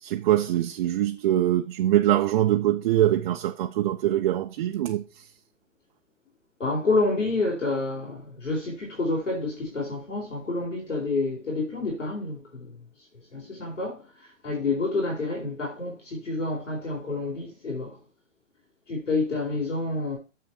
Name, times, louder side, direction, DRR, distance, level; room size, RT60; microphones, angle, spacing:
voice 1, 0.0-5.0, right 13 dB, 40° right, 0.7 m, -23 dB
voice 2, 6.6-12.8 13.3-18.0 18.9-20.2, left 3 dB, 80° left, 4.2 m, -28 dB
7.8 x 6.5 x 4.4 m
figure-of-eight pair, 115°, 37 cm